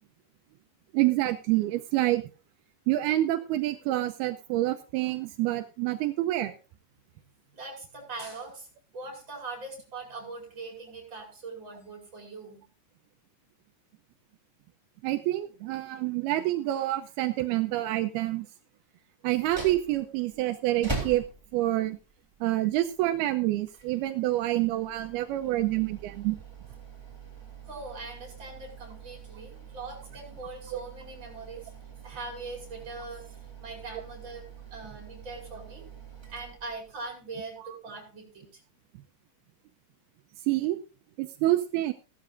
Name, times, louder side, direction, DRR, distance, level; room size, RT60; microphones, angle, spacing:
voice 1, 0.9-2.2 2.9-6.6 15.0-18.5 19.2-21.2 21.5-22.0 22.4-26.4 30.7-30.8 37.6-37.8 40.4-40.8 41.2-41.9, right 16 dB, 80° right, 7 dB, 2.6 m, -27 dB
voice 2, 7.5-8.7 8.9-12.7 27.7-31.7 32.0-35.9 36.3-38.6, right 3 dB, 30° right, 2 dB, 6.0 m, -41 dB
sound 1, 19.4-37.1, right 3 dB, 5° right, 3.0 m, -44 dB
16.5 x 12.5 x 2.6 m, 0.34 s
omnidirectional pair, 4.6 m